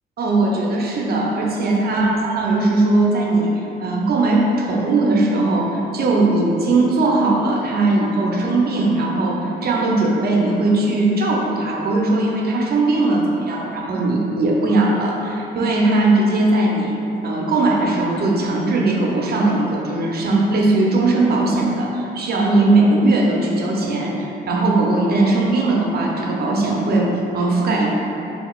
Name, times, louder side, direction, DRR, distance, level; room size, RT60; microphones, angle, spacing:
voice 1, 0.2-17.0 17.2-27.9, right 2 dB, 55° right, -2 dB, 0.6 m, -19 dB
3.8 x 3.5 x 2.3 m, 3.0 s
cardioid pair, 90°, 20 cm